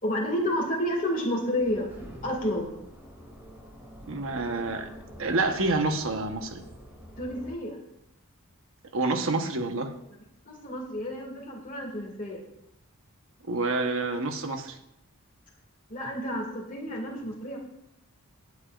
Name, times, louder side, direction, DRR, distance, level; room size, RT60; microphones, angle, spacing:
voice 1, 0.0-1.9 2.2-2.8 7.2-7.8 10.5-12.4 15.9-17.6, equal, 40° left, -3 dB, 2.2 m, -30 dB
sound 1, 1.6-7.5, equal, 10° right, 2.5 m, -46 dB
voice 2, 4.1-4.9 5.2-6.6 8.9-9.9 13.5-14.8, right 3 dB, 65° right, 6 dB, 1.1 m, -28 dB
18.5 x 8.4 x 2.5 m, 0.81 s
head